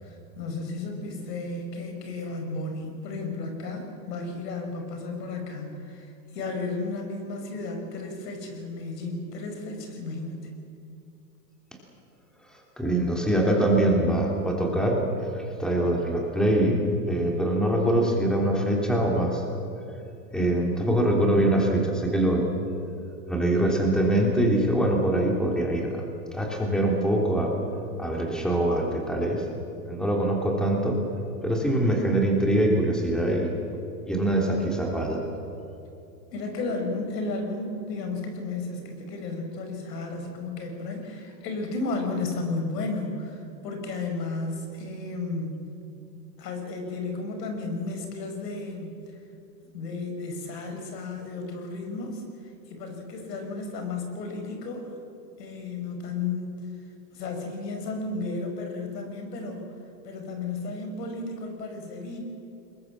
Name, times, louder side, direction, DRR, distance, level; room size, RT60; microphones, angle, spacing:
voice 1, 0.0-10.5 36.3-45.6 46.4-49.0 49.7-52.2 52.7-54.9 55.4-56.7 57.1-59.6 60.0-62.2, left 3 dB, 75° left, 4 dB, 5.6 m, -33 dB
voice 2, 12.5-16.8 17.1-19.4 20.3-22.5 23.3-26.1 26.3-27.5 28.0-29.5 29.9-31.0 31.4-33.5 34.1-35.2, right 1 dB, ahead, 0 dB, 3.2 m, -24 dB
22.0 x 21.0 x 7.5 m, 2.7 s
supercardioid pair, 135°, 49 cm